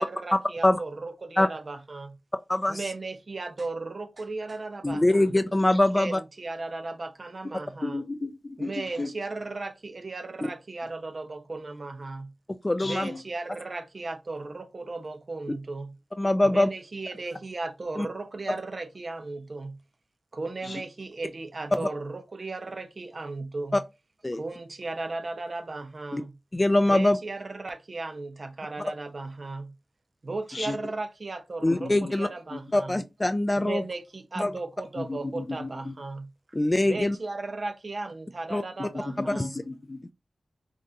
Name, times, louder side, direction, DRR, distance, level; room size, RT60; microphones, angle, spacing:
voice 1, 0.0-2.2 2.7-5.3 5.9-8.0 8.6-12.3 12.8-16.0 16.4-19.8 20.3-23.8 24.3-26.4 26.9-29.8 30.2-33.0 33.5-36.3 36.8-39.6, right 3 dB, 60° right, 0.7 m, -36 dB
voice 2, 4.8-6.2 12.6-13.1 16.2-16.7 18.0-18.1 24.2-24.4 26.1-26.2 26.5-27.2 31.6-32.3 32.7-33.8 34.4-34.5 36.5-37.2 38.5-38.6 39.4-39.5, left 1 dB, 30° left, 0.4 m, -23 dB
voice 3, 7.8-9.1 12.8-13.2 20.6-20.8 30.5-30.8 31.7-32.1 32.5-32.6 35.0-36.0 39.1-40.0, left 2 dB, 55° left, 1.0 m, -35 dB
5.2 x 2.6 x 2.7 m
cardioid pair, 40°, 0 cm